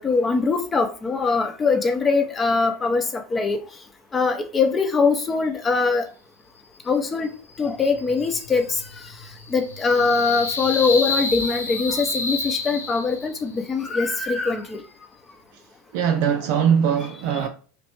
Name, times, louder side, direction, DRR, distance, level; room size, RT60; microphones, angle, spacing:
voice 1, 0.0-3.6 4.1-6.1 6.9-7.3 7.6-8.8 9.5-14.8, left 4 dB, 20° left, 0.7 m, -22 dB
sound 1, 7.5-13.5, left 3 dB, 80° left, 0.6 m, -30 dB
voice 2, 15.9-17.5, right 8 dB, 55° right, 0.4 m, -21 dB
3.2 x 3.0 x 2.9 m
figure-of-eight pair, 80°, 0 cm